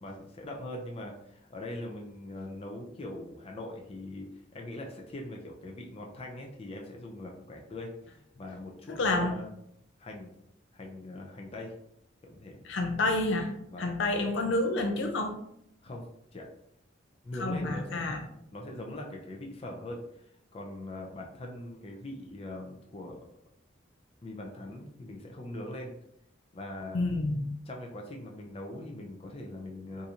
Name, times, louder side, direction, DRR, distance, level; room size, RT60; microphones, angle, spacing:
voice 1, 0.0-4.3 4.5-9.5 10.0-10.3 10.7-11.7 12.2-12.6 13.7-13.9 15.8-16.0 16.3-16.5 17.2-18.2 18.5-23.2 24.2-25.9 26.5-27.0 27.7-30.1, left 1 dB, 30° left, 1 dB, 0.5 m, -41 dB
voice 2, 8.9-9.4 12.6-13.5 13.8-15.4 17.4-18.2 26.9-27.4, left 2 dB, 80° left, 4 dB, 0.5 m, -29 dB
3.6 x 2.6 x 2.8 m, 0.74 s
head